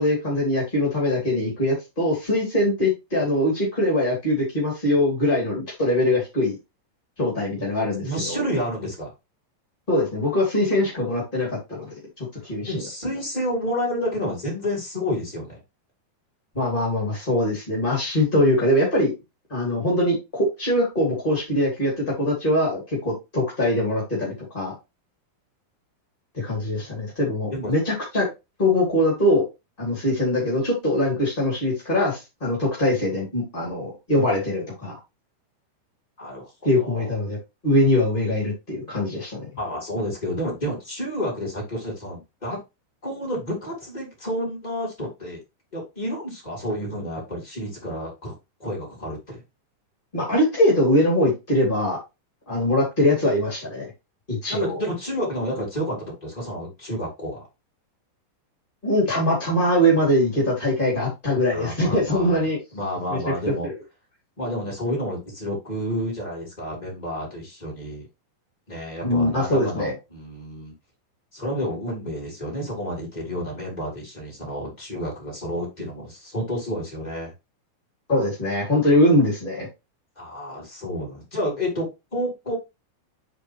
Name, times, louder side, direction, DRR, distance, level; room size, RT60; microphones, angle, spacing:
voice 1, 0.0-6.5 7.2-8.4 9.9-11.9 12.4-12.7 16.5-19.1 19.5-24.7 26.3-28.3 28.6-29.4 29.8-34.9 36.6-37.4 37.6-39.4 50.1-52.0 52.5-53.8 54.3-54.8 58.8-62.6 63.1-63.7 69.0-69.9 78.1-79.7, left 1 dB, 30° left, -3 dB, 1.0 m, -22 dB
voice 2, 8.0-9.1 12.6-15.6 26.8-26.9 27.5-27.7 36.2-36.5 36.8-37.1 39.6-42.6 43.0-45.4 45.7-48.3 48.6-49.4 54.5-56.0 56.2-57.4 61.5-62.5 62.7-63.7 64.4-68.1 68.7-70.7 71.3-77.3 80.2-82.5, equal, 10° left, -3 dB, 2.2 m, -30 dB
10.0 x 4.0 x 3.0 m, 0.24 s
omnidirectional pair, 5.8 m